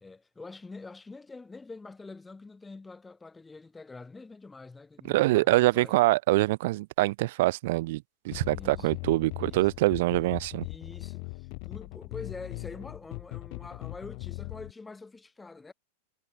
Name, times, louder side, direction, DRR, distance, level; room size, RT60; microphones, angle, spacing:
voice 1, 0.0-6.0 8.5-8.9 9.4-9.7 10.6-15.7, left 3 dB, 10° left, 1.6 m, -45 dB
voice 2, 5.1-10.7, right 19 dB, 55° right, 0.4 m, -25 dB
sound 1, 8.3-14.7, left 40 dB or more, 50° left, 1.1 m, -40 dB
figure-of-eight pair, 90°, 0 cm